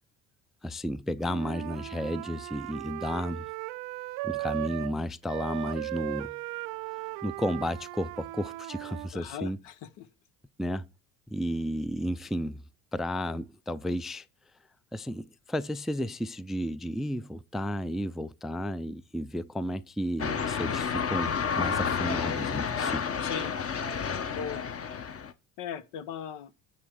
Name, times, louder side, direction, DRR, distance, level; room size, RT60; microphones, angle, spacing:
voice 1, 0.6-3.5 4.2-6.4 6.8-9.6 10.6-10.9 11.3-12.6 12.9-14.3 14.9-23.1, equal, ahead, 0.3 m, -33 dB
Wind instrument woodwind instrument, 1.2-5.0 5.3-9.1, right 21 dB, 80° right, 0.6 m, -37 dB
voice 2, 9.1-10.1 23.2-23.5 24.3-24.6 25.6-26.5, left 8 dB, 80° left, 1.0 m, -38 dB
sound 1, 20.2-25.3, left 6 dB, 35° left, 0.9 m, -30 dB
9.8 x 3.4 x 6.4 m
supercardioid pair, 80°, 42 cm